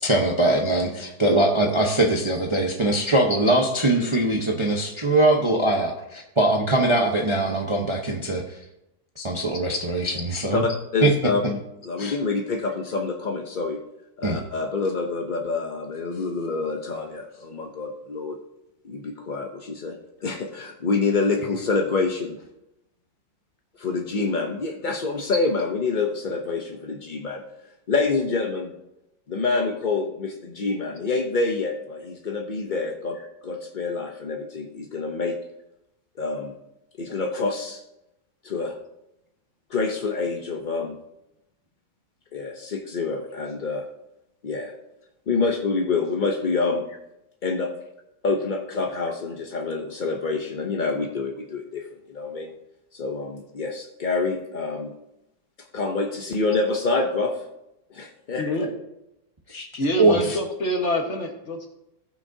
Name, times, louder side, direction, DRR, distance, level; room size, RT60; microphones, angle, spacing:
voice 1, 0.0-8.4 9.2-10.6 11.0-11.1 12.0-12.1 14.2-14.4 59.5-59.6 60.0-60.4, right 2 dB, 25° right, 0 dB, 0.7 m, -22 dB
voice 2, 10.5-13.8 14.2-18.4 18.8-20.0 20.2-22.4 23.8-27.4 27.9-28.7 29.3-33.2 33.4-35.4 36.2-36.5 37.0-37.8 38.4-38.7 39.7-41.0 42.3-43.8 44.4-44.7 45.3-46.8 47.4-47.7 48.2-52.5 52.9-54.9 55.7-57.4 57.9-58.7, left 4 dB, 60° left, 2 dB, 0.4 m, -27 dB
voice 3, 58.4-58.7 59.8-61.7, left 1 dB, 45° left, 2 dB, 1.5 m, -26 dB
17.5 x 6.1 x 2.7 m, 0.88 s
omnidirectional pair, 1.9 m